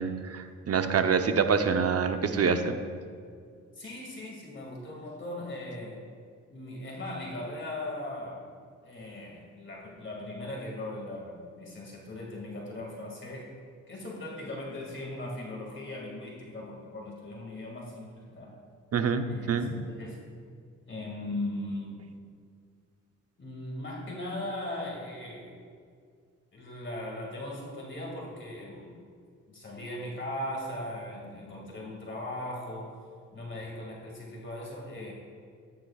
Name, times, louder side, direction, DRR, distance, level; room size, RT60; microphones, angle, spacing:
voice 1, 0.0-2.7 18.9-19.7, right 5 dB, 50° right, 7 dB, 0.8 m, -26 dB
voice 2, 3.8-6.1 6.5-8.5 8.8-13.5 13.9-18.6 19.2-20.2 20.9-22.0 23.4-25.6 26.5-29.0 29.5-33.0 33.3-35.1, left 1 dB, 40° left, -2 dB, 2.3 m, -38 dB
13.5 x 9.8 x 2.4 m, 2.1 s
cardioid pair, 75°, 31 cm